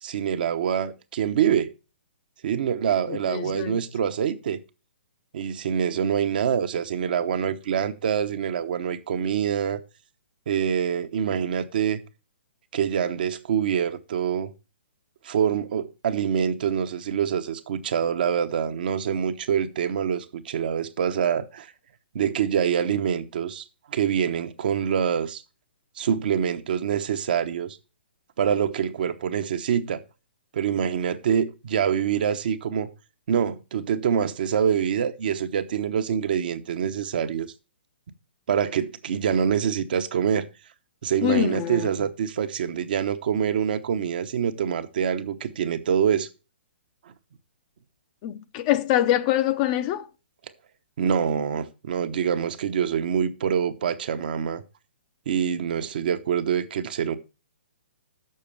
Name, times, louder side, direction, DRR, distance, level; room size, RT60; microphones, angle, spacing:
voice 1, 0.0-1.7 2.4-4.6 5.3-9.8 10.5-12.0 12.7-14.5 15.2-21.7 22.1-25.4 26.0-27.8 28.4-30.0 30.5-32.9 33.3-37.5 38.5-40.5 41.0-46.3 51.0-54.6 55.3-57.2, right 8 dB, 55° right, 0.9 m, -25 dB
voice 2, 3.1-3.8 41.2-41.9 48.2-50.1, left 12 dB, 35° left, 0.7 m, -24 dB
6.8 x 6.5 x 6.9 m
figure-of-eight pair, 125°, 6 cm